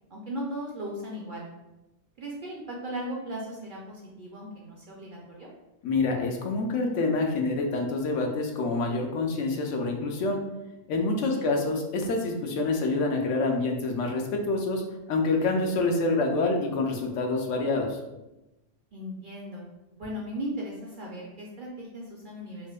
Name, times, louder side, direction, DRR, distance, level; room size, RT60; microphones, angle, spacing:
voice 1, 0.1-1.5 2.2-5.5 11.3-11.5 18.9-19.6 20.0-22.7, equal, 60° right, -3 dB, 0.5 m, -37 dB
voice 2, 5.8-10.4 10.9-14.8 15.1-18.0, left 3 dB, 80° left, 2 dB, 0.9 m, -27 dB
4.3 x 2.1 x 2.3 m, 1.0 s
omnidirectional pair, 1.2 m